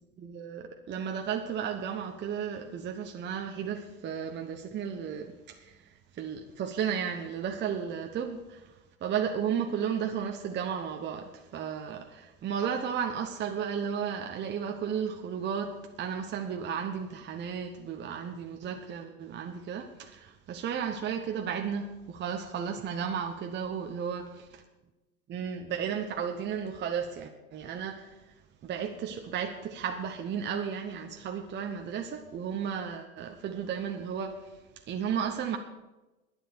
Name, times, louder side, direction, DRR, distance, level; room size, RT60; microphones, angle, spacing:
voice 1, 0.2-5.7 6.2-8.6 9.0-24.2 25.3-28.1 28.6-34.4 34.9-35.6, right 7 dB, 25° right, 4 dB, 1.0 m, -34 dB
11.0 x 10.0 x 7.0 m, 1.1 s
hypercardioid pair, 95°, 44 cm